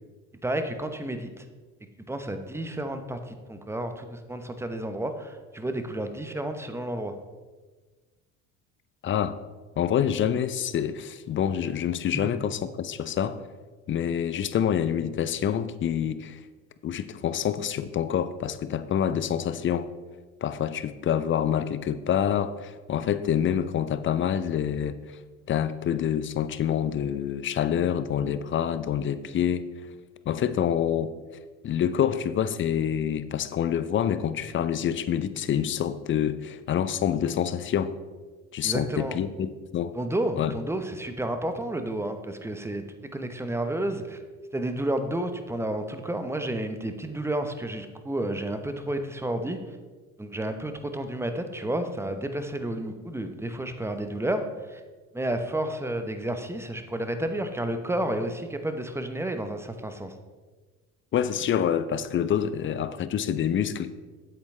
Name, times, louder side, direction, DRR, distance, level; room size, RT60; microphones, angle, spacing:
voice 1, 0.4-1.4 2.1-7.1 12.1-12.3 38.6-39.2 39.9-44.2 44.5-49.6 50.2-54.8 55.1-60.1, right 1 dB, 5° right, 7 dB, 0.9 m, -31 dB
voice 2, 9.0-9.4 9.8-13.4 13.9-16.4 16.8-19.9 20.4-25.0 25.5-29.7 30.3-31.1 31.6-37.9 38.5-39.9 40.4-40.5 61.1-63.9, left 9 dB, 30° left, 13 dB, 0.5 m, -27 dB
9.0 x 8.1 x 3.3 m, 1.3 s
hypercardioid pair, 70°, 41 cm